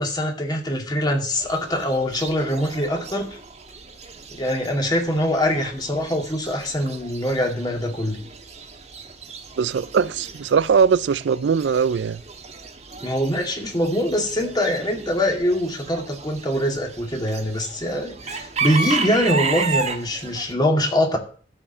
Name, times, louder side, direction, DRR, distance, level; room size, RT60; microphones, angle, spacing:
voice 1, 0.0-3.4 4.3-8.2 13.0-21.2, equal, 25° left, 2.3 m, -23 dB
Chicken rooster / Bird, 1.3-20.5, right 4 dB, 40° right, 1.4 m, -33 dB
voice 2, 9.6-12.2, right 6 dB, 90° right, 0.4 m, -20 dB
13.5 x 5.0 x 7.2 m
head